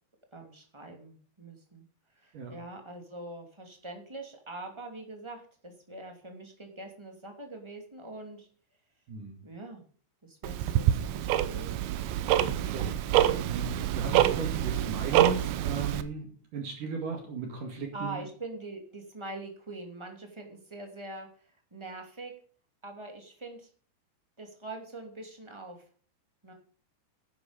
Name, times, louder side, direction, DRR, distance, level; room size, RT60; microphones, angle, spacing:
voice 1, 0.3-1.8 2.1-8.5 9.4-9.8 10.2-11.9 12.5-12.7 17.9-21.3 21.7-22.3 22.8-23.7 24.4-25.8 26.4-26.5, right 2 dB, 10° right, 3 dB, 1.6 m, -43 dB
Tick-tock, 10.4-16.0, right 12 dB, 85° right, 3.1 m, -26 dB
voice 2, 12.3-13.0 13.2-18.2, right 5 dB, 55° right, 3 dB, 3.3 m, -36 dB
11.5 x 10.5 x 5.2 m, 0.44 s
omnidirectional pair, 5.0 m